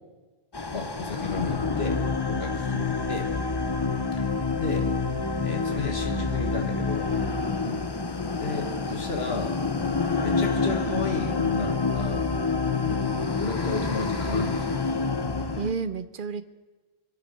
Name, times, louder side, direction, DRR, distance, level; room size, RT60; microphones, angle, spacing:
sound 1, 0.5-15.7, left 4 dB, 25° left, 0.7 m, -27 dB
voice 1, 0.7-3.3 4.2-4.3 4.6-4.9 5.4-7.1 8.4-9.6 10.2-12.3 13.4-14.9, left 4 dB, 75° left, 3 dB, 2.1 m, -33 dB
voice 2, 15.6-16.4, right 5 dB, 55° right, 12 dB, 0.9 m, -32 dB
25.0 x 9.1 x 5.4 m, 1.3 s
omnidirectional pair, 1.1 m